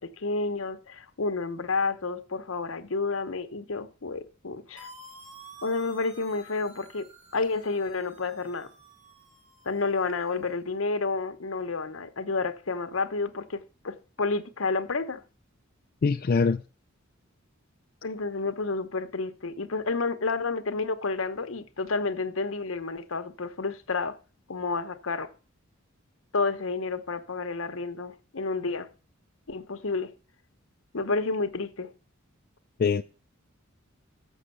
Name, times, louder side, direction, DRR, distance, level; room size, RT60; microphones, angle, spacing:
voice 1, 0.0-4.9 5.6-7.0 7.3-8.7 9.6-15.2 18.0-24.1 24.5-25.3 26.3-28.9 29.5-30.1 30.9-31.9, left 3 dB, 70° left, 0.9 m, -30 dB
sound 1, 4.8-10.5, right 1 dB, 35° right, 1.7 m, -51 dB
voice 2, 16.0-16.6 32.8-33.0, left 5 dB, 45° left, 0.4 m, -23 dB
7.4 x 6.2 x 6.7 m
head